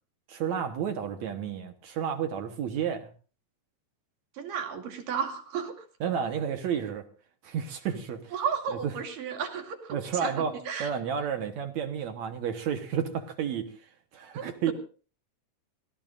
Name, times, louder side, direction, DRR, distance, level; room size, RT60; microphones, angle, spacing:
voice 1, 0.3-3.1 6.0-7.1 7.4-8.4 8.7-8.9 9.9-10.5 10.8-14.7, right 8 dB, 65° right, 7 dB, 2.4 m, -31 dB
voice 2, 4.4-5.7 8.3-10.3 10.7-10.9 14.3-14.7, right 7 dB, 90° right, 3 dB, 4.1 m, -33 dB
26.5 x 17.5 x 2.6 m, 0.38 s
omnidirectional pair, 3.8 m